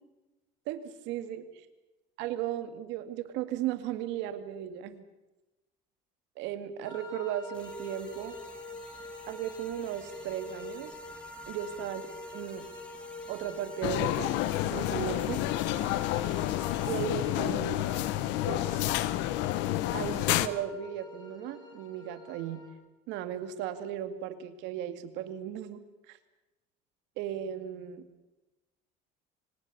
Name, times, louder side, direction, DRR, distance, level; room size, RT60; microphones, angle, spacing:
voice 1, 0.7-1.4 2.2-5.1 6.4-8.4 9.3-10.9 11.5-12.0 12.3-12.7 13.3-14.4 14.7-15.4 16.8-17.9 18.5-18.9 19.9-22.6 23.1-25.8 26.1-26.2 27.2-28.0, right 11 dB, 85° right, 10 dB, 2.2 m, -36 dB
sound 1, 6.8-22.7, left 2 dB, 25° left, 5.3 m, -46 dB
sound 2, 7.5-17.1, left 1 dB, 5° left, 2.7 m, -53 dB
sound 3, 13.8-20.5, left 15 dB, 80° left, 1.2 m, -29 dB
25.0 x 19.0 x 6.9 m, 1.0 s
cardioid pair, 135°, 18 cm